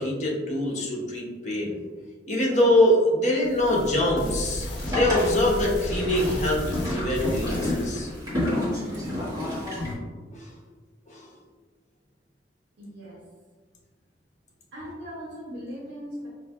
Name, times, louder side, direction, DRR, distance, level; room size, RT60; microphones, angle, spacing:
voice 1, 0.0-1.8 2.3-6.6 6.9-8.1 10.3-10.5 11.1-11.3, left 1 dB, 40° left, -2 dB, 0.7 m, -24 dB
sound 1, 3.4-8.3, equal, 80° left, 0.6 m, -34 dB
Boat Water vehicle, 4.6-9.9, left 1 dB, 20° right, 1.2 m, -30 dB
voice 2, 12.8-13.2 14.7-16.3, equal, 75° right, -7 dB, 0.8 m, -38 dB
4.6 x 2.5 x 2.3 m, 1.4 s
head